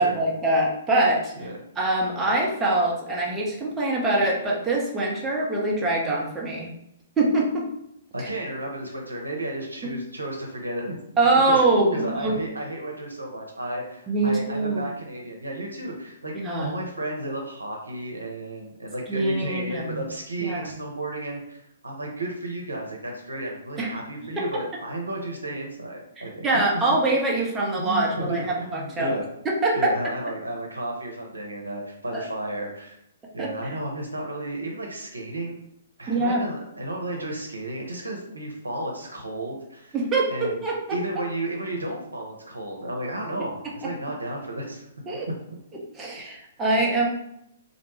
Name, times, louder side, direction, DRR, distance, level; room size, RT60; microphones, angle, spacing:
voice 1, 0.0-1.3 1.8-6.7 7.2-7.7 8.2-8.3 9.8-9.9 11.2-12.4 14.1-14.9 16.3-16.7 19.1-20.0 20.4-20.7 23.8-23.9 24.4-24.5 26.4-29.1 29.4-30.1 32.1-32.3 33.4-33.7 36.1-36.4 39.9-41.0 45.1-45.3 45.9-47.1, right 2 dB, 15° right, -3 dB, 0.6 m, -24 dB
voice 2, 8.1-11.0 11.5-16.3 16.6-26.6 27.8-29.3 29.7-33.0 33.3-35.6 36.0-40.0 40.3-40.6 40.9-44.9, right 1 dB, 90° right, 0 dB, 0.7 m, -33 dB
2.5 x 2.2 x 2.9 m, 0.78 s
figure-of-eight pair, 125°, 0 cm